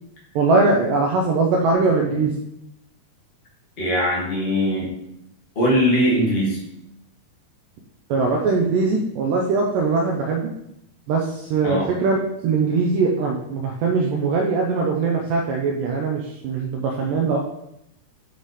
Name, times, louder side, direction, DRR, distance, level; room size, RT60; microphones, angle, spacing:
voice 1, 0.4-2.3 8.1-10.5 11.1-12.2 12.4-17.4, right 4 dB, 85° right, 0 dB, 1.9 m, -21 dB
voice 2, 3.8-4.9 5.5-6.6 11.6-11.9, equal, 45° left, -6 dB, 0.7 m, -20 dB
7.8 x 3.2 x 4.1 m, 0.81 s
omnidirectional pair, 4.5 m